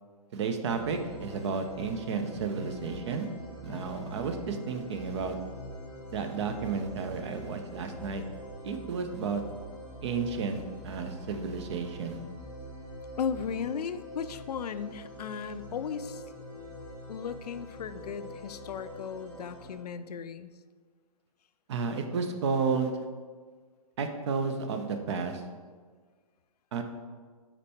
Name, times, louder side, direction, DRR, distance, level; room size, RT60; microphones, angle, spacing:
voice 1, 0.3-3.3 3.6-5.4 6.1-8.2 8.6-9.4 10.0-12.2 21.7-22.9 24.0-25.4 26.7-26.8, right 5 dB, 45° right, 6 dB, 0.6 m, -32 dB
sound 1, 0.7-19.7, equal, 10° left, 0.9 m, -44 dB
voice 2, 13.2-16.2 17.1-20.5, left 7 dB, 85° left, 12 dB, 0.4 m, -36 dB
5.1 x 4.4 x 4.2 m, 1.6 s
hypercardioid pair, 155°, 20 cm